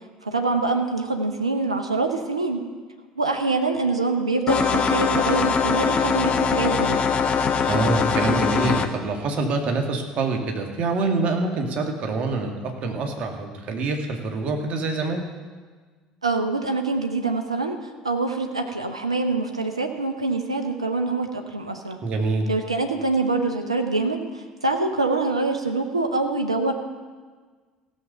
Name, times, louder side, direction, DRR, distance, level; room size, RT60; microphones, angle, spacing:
voice 1, 0.2-2.6 3.2-7.0 16.2-22.0 22.5-26.7, right 3 dB, 85° right, 5 dB, 0.9 m, -25 dB
sound 1, 4.5-8.9, left 6 dB, 35° left, 1.0 m, -22 dB
voice 2, 7.7-15.2 22.0-22.5, right 3 dB, 45° right, 3 dB, 2.0 m, -25 dB
16.0 x 6.9 x 6.8 m, 1.5 s
figure-of-eight pair, 60°, 3 cm